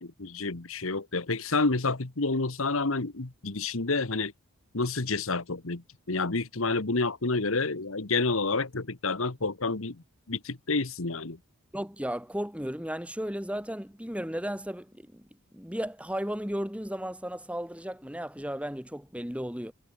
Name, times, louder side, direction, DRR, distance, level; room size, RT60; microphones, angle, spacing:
voice 1, 0.0-4.3 4.7-11.4, left 3 dB, 70° left, 1.5 m, -29 dB
voice 2, 11.7-15.3 15.5-19.7, equal, 5° right, 3.3 m, -34 dB
head